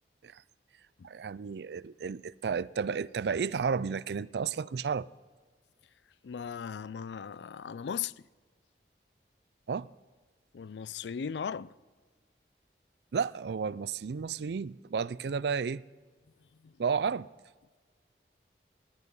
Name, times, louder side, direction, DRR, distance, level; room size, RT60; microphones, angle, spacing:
voice 1, 1.0-5.1 9.7-9.9 13.1-15.8 16.8-17.3, right 6 dB, 70° right, 0.4 m, -32 dB
voice 2, 6.2-8.1 10.5-11.7 16.6-16.7, left 7 dB, 80° left, 0.4 m, -37 dB
17.5 x 11.5 x 5.5 m
head